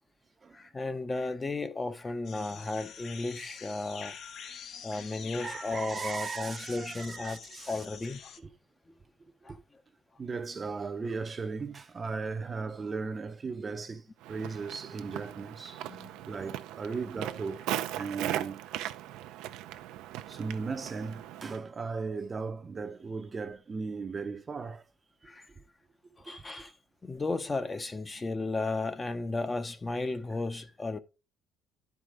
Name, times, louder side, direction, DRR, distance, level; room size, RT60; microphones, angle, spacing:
voice 1, 0.5-4.2 4.8-7.4 7.7-8.4 9.4-9.6 15.9-16.1 25.2-25.5 26.2-26.7 27.0-31.0, left 3 dB, 20° left, 0.6 m, -34 dB
sound 1, 2.2-8.4, left 7 dB, 55° left, 0.8 m, -46 dB
voice 2, 4.7-5.1 5.4-7.8 8.4-8.5 9.5-9.6 10.2-18.7 20.3-24.8 25.2-25.6 26.2-26.3, right 4 dB, 30° right, 0.6 m, -37 dB
Walk footsteps, 14.2-21.6, right 13 dB, 85° right, 0.5 m, -38 dB
11.5 x 4.8 x 3.7 m
cardioid pair, 115°, 0 cm